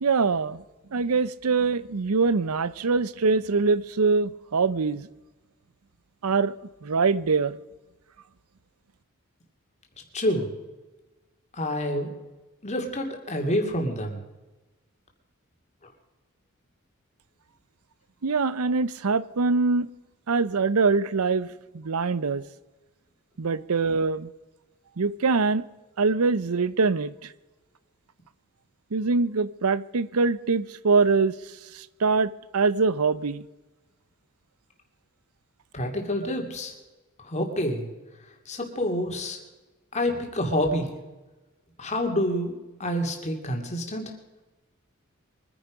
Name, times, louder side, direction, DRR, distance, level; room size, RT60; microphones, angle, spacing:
voice 1, 0.0-0.6 0.9-5.1 6.2-6.5 6.8-7.5 18.2-19.9 20.3-21.5 21.7-22.4 23.4-24.3 25.0-25.7 26.0-27.1 28.9-31.3 31.7-33.4, right 4 dB, 90° right, 0.7 m, -23 dB
voice 2, 10.1-10.5 11.5-12.1 12.6-14.2 35.7-36.7 37.2-37.9 38.5-39.4 39.9-40.9 41.8-42.5 42.8-44.1, left 1 dB, 30° left, 2.6 m, -27 dB
23.5 x 10.0 x 5.1 m
head